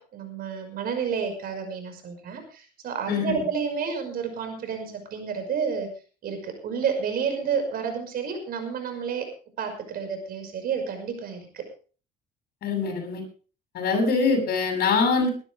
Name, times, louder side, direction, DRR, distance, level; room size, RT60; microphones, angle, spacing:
voice 1, 0.0-5.9 6.2-9.3 9.6-11.7, right 6 dB, 60° right, 7 dB, 5.7 m, -30 dB
voice 2, 3.1-3.4 12.6-13.2 13.7-15.3, left 4 dB, 65° left, 4 dB, 8.0 m, -23 dB
21.5 x 12.5 x 3.5 m, 0.38 s
cardioid pair, 110°, 17 cm